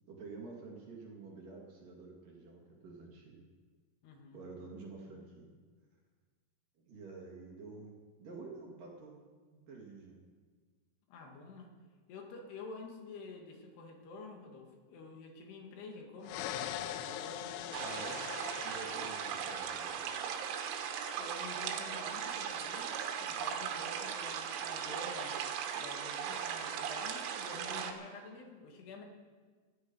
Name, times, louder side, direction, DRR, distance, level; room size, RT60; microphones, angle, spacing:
voice 1, 0.1-3.4 4.3-5.5 6.8-9.2 9.7-10.2 17.6-18.3 18.6-20.1, right 3 dB, 50° right, -2 dB, 3.2 m, -49 dB
voice 2, 4.0-4.4 11.1-11.7 12.1-16.5 16.9-17.6 21.2-25.4 25.8-29.0, left 3 dB, 60° left, 2 dB, 3.5 m, -49 dB
sound 1, 16.2-20.1, left 11 dB, 80° left, 3.0 m, -42 dB
sound 2, 17.7-27.9, right 8 dB, 80° right, 3.8 m, -38 dB
18.0 x 13.5 x 5.4 m, 1.5 s
omnidirectional pair, 6.0 m